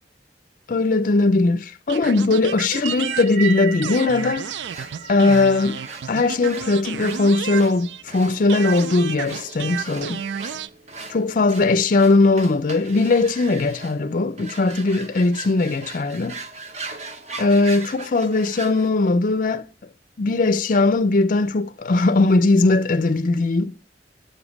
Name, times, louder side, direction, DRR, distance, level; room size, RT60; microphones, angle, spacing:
voice 1, 0.7-4.5 5.1-5.8 6.1-10.2 11.1-16.4 16.9-17.0 17.4-19.7 20.2-23.7, left 3 dB, 50° left, 0.5 m, -19 dB
sound 1, 1.9-8.2 8.5-10.7, right 8 dB, 80° right, 0.4 m, -32 dB
sound 2, 2.6-7.2, right 6 dB, 65° right, 4.1 m, -35 dB
sound 3, 4.6-18.9, right 3 dB, 40° right, 1.0 m, -39 dB
9.0 x 7.1 x 5.0 m
head